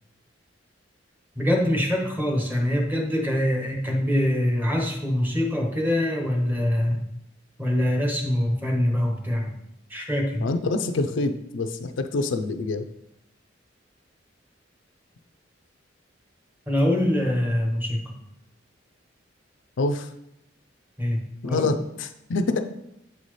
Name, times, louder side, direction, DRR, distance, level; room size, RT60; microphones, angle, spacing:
voice 1, 1.4-7.0 7.6-9.5 9.9-10.5 16.7-18.1 21.0-21.2 21.4-21.7, left 1 dB, 10° right, 0 dB, 1.1 m, -24 dB
voice 2, 10.4-12.9 19.8-20.1 21.4-22.6, left 3 dB, 85° left, 8 dB, 0.5 m, -26 dB
8.0 x 4.1 x 3.2 m, 0.81 s
head